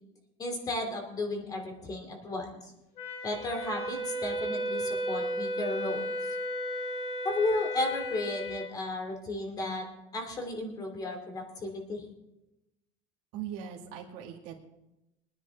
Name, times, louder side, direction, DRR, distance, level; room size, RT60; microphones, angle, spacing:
voice 1, 0.4-2.7 3.2-6.0 7.2-9.9 10.1-12.0, left 2 dB, 25° left, 3 dB, 2.9 m, -34 dB
Wind instrument woodwind instrument, 3.0-8.7, equal, 50° left, 2.1 m, -34 dB
voice 2, 13.3-14.5, right 9 dB, 70° right, -1 dB, 2.3 m, -40 dB
23.0 x 9.9 x 3.5 m, 0.92 s
cardioid pair, 145°, 14 cm